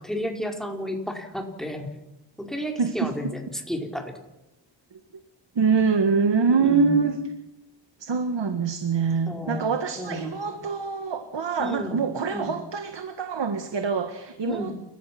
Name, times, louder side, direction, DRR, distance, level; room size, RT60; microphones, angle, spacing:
voice 1, 0.0-1.9 2.4-4.1 6.6-7.1 9.3-10.6 11.6-12.0 12.3-12.5 14.5-14.7, left 1 dB, ahead, 1 dB, 4.7 m, -32 dB
voice 2, 2.8-3.3 5.6-7.2 8.0-14.8, right 5 dB, 75° right, 6 dB, 1.8 m, -25 dB
29.0 x 15.5 x 6.0 m, 0.94 s
cardioid pair, 65°, 44 cm